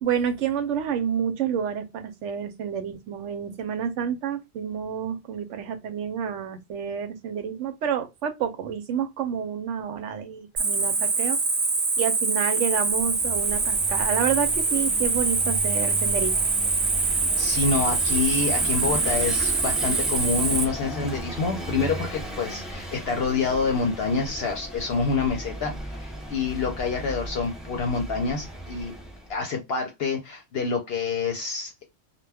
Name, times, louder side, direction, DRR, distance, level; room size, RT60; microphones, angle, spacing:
voice 1, 0.0-11.4 12.0-16.4, right 8 dB, 90° right, 1.0 m, -29 dB
Cricket, 10.6-20.6, right 4 dB, 50° right, 0.9 m, -24 dB
Vehicle / Engine, 12.8-29.4, equal, ahead, 0.4 m, -36 dB
voice 2, 17.4-28.9 29.3-31.8, left 4 dB, 65° left, 0.8 m, -27 dB
2.3 x 2.2 x 3.3 m
omnidirectional pair, 1.2 m